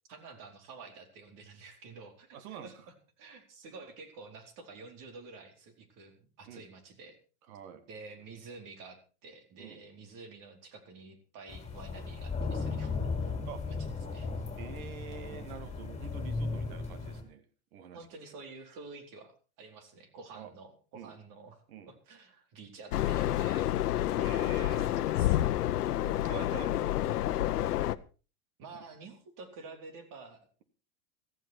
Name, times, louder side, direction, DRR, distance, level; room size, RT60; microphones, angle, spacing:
voice 1, 0.1-2.8 3.2-7.2 7.9-13.3 13.7-14.5 17.9-23.7 24.5-25.4 28.6-30.5, right 4 dB, 45° right, 6 dB, 4.1 m, -50 dB
voice 2, 2.3-2.7 6.5-6.6 7.5-7.9 9.6-9.8 13.4-13.6 14.6-17.4 17.7-18.1 20.3-20.5 20.9-21.1 21.7-21.9 24.1-24.9 25.6-27.0, right 8 dB, 70° right, 11 dB, 2.5 m, -46 dB
sound 1, 11.5-17.2, left 4 dB, 15° left, 5.0 m, -36 dB
sound 2, 22.9-27.9, left 13 dB, 85° left, 0.9 m, -29 dB
15.0 x 14.5 x 4.5 m, 0.35 s
hypercardioid pair, 110°, 45 cm